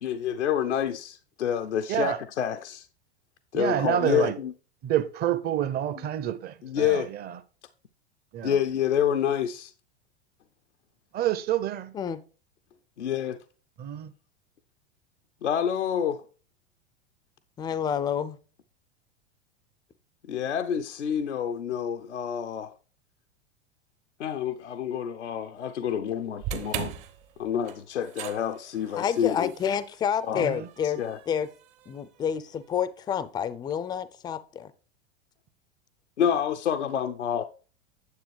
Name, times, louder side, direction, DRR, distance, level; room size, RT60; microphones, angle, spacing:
voice 1, 0.0-2.9 3.5-4.5 6.6-7.1 8.4-9.7 13.0-13.4 15.4-16.2 20.3-22.7 24.2-26.9 27.4-29.5 30.2-30.5 30.8-31.2 36.2-37.4, left 9 dB, 85° left, 0.6 m, -28 dB
voice 2, 1.9-2.2 3.5-4.4 4.8-7.4 8.3-8.6 11.1-12.0 13.8-14.1 30.3-30.7, right 11 dB, 30° right, 0.6 m, -28 dB
voice 3, 17.6-18.4 29.0-31.0 31.3-31.5 31.9-34.7, left 8 dB, 15° left, 0.3 m, -29 dB
sound 1, 26.4-32.7, right 9 dB, 55° right, 1.0 m, -40 dB
9.6 x 7.1 x 3.2 m
figure-of-eight pair, 90°, 34 cm